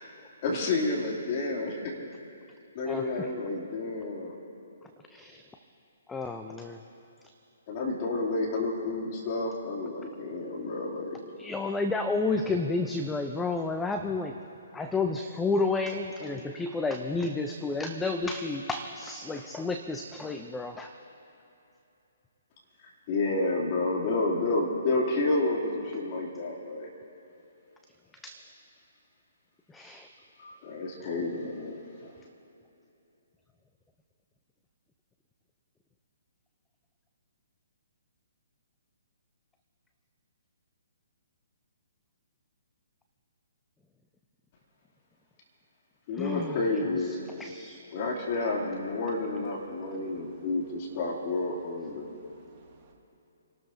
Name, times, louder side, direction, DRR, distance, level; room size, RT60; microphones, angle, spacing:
voice 1, 0.4-1.7 2.7-4.3 7.7-11.2 23.1-26.9 30.4-31.8 46.1-47.2 47.9-52.1, left 2 dB, 40° left, -3 dB, 2.9 m, -30 dB
voice 2, 2.9-3.3 5.1-5.4 6.1-6.8 11.4-14.4 14.7-20.9 28.2-28.4 29.7-30.1 46.2-46.7 47.0-47.8, left 3 dB, 10° left, 6 dB, 0.6 m, -31 dB
voice 3, 49.7-50.6 51.8-52.9, right 4 dB, 30° right, -2 dB, 2.2 m, -59 dB
28.5 x 13.0 x 2.8 m, 2.9 s
figure-of-eight pair, 130°, 0 cm